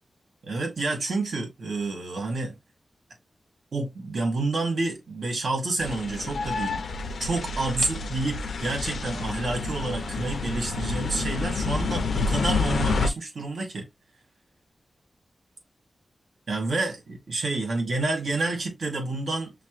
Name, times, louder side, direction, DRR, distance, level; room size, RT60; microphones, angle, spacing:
voice 1, 0.4-2.6 3.7-6.8 7.2-13.9 16.5-19.5, right 2 dB, 65° right, 1.8 m, -29 dB
sound 1, 5.8-13.1, left 3 dB, 80° left, 0.5 m, -29 dB
5.9 x 2.1 x 3.0 m
wide cardioid pair, 155°, 0 cm